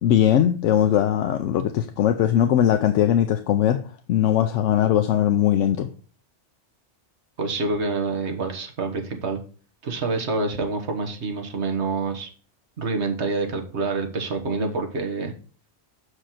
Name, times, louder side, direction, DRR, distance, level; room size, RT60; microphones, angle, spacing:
voice 1, 0.0-3.8 4.1-5.9, left 10 dB, 80° left, 8 dB, 0.9 m, -20 dB
voice 2, 7.4-9.4 9.8-12.3 12.8-15.3, right 3 dB, 65° right, 4 dB, 1.6 m, -27 dB
6.3 x 4.9 x 5.8 m, 0.40 s
omnidirectional pair, 1.2 m